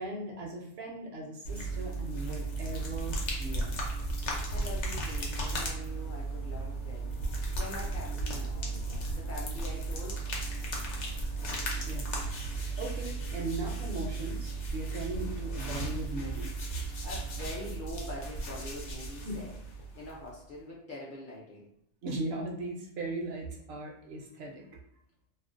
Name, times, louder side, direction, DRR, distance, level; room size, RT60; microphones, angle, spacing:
voice 1, 0.0-3.9 11.7-12.3 12.8-16.5 19.2-19.4 22.0-24.6, right 2 dB, 65° right, -1 dB, 0.7 m, -38 dB
sound 1, 1.4-20.3, right 2 dB, 75° left, 0.9 m, -35 dB
voice 2, 4.5-7.1 7.6-10.2 17.0-19.5 20.0-21.7, left 1 dB, 60° left, -4 dB, 0.6 m, -43 dB
2.4 x 2.0 x 2.4 m, 0.78 s
omnidirectional pair, 1.2 m